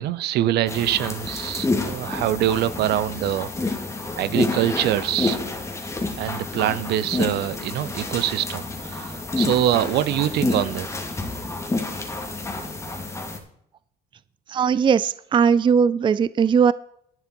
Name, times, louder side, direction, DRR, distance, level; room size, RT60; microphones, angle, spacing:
voice 1, 0.0-3.8 4.2-5.4 6.2-10.9, right 12 dB, 75° right, 17 dB, 0.8 m, -24 dB
sound 1, 0.7-13.4, left 3 dB, 15° left, 2.4 m, -29 dB
voice 2, 14.5-16.7, right 6 dB, 30° right, 17 dB, 0.5 m, -19 dB
11.0 x 10.5 x 4.5 m, 0.68 s
cardioid pair, 110°, 17 cm